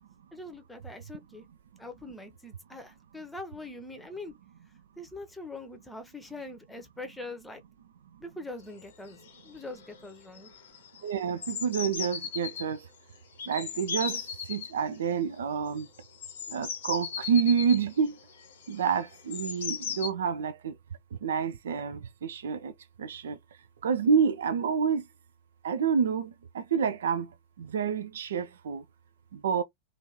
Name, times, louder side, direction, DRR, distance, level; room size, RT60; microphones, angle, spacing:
voice 1, 0.3-1.4 1.8-4.3 5.0-7.6 8.2-10.5, left 2 dB, 5° left, 0.8 m, -43 dB
sound 1, 8.8-8.9 9.1-9.5 9.8-10.1 10.3-12.6 13.4-14.7 15.8-20.1, left 6 dB, 60° left, 0.7 m, -37 dB
voice 2, 11.0-12.9 13.5-15.9 16.5-18.2 18.7-20.7 21.2-22.7 23.0-23.4 23.8-25.0 25.6-27.3 27.6-28.8 29.3-29.6, right 6 dB, 65° right, 0.3 m, -28 dB
2.7 x 2.5 x 3.0 m
figure-of-eight pair, 90°, 0 cm